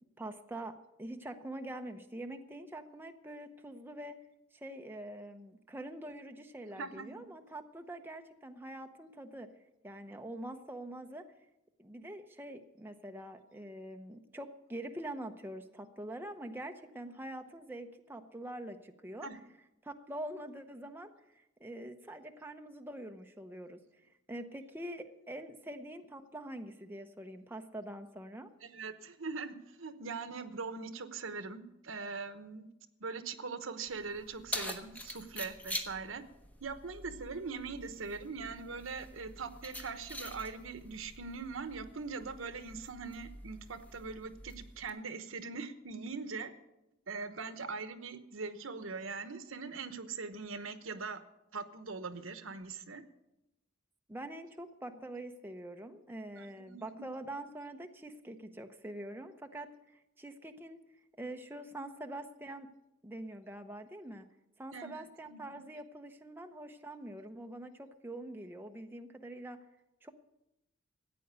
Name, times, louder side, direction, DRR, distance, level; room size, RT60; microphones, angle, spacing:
voice 1, 0.2-4.2 4.5-9.5 9.8-11.2 11.8-19.3 19.8-23.8 24.3-28.5 54.1-60.8 61.2-62.7 63.0-64.3 64.6-69.6 70.0-70.1, right 1 dB, 10° right, 5 dB, 0.8 m, -45 dB
voice 2, 6.8-7.2 19.2-19.4 28.6-32.7 33.0-36.2 36.6-46.5 47.1-51.2 51.5-53.0 56.4-57.1 64.7-65.7, right 4 dB, 80° right, 10 dB, 1.1 m, -42 dB
Keys jangling, 33.9-44.9, left 1 dB, 10° left, 1.3 m, -46 dB
14.5 x 9.2 x 8.1 m, 0.91 s
head